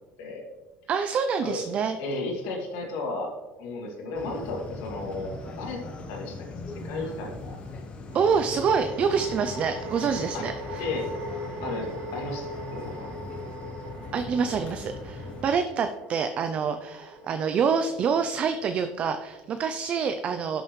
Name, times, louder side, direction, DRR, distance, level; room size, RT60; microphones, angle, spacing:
voice 1, 0.9-2.0 8.1-10.9 14.1-20.6, right 6 dB, 35° right, 8 dB, 0.4 m, -26 dB
voice 2, 2.0-5.8 6.1-7.6 10.3-10.5 10.8-11.1 11.6-13.2, left 2 dB, 85° left, 0 dB, 2.3 m, -34 dB
sound 1, 4.1-15.5, left 3 dB, 30° left, 1.0 m, -40 dB
sound 2, 5.1-5.2 8.1-19.5, right 1 dB, 55° right, 2.1 m, -40 dB
11.5 x 6.4 x 3.1 m, 1.2 s
cardioid pair, 170°, 4 cm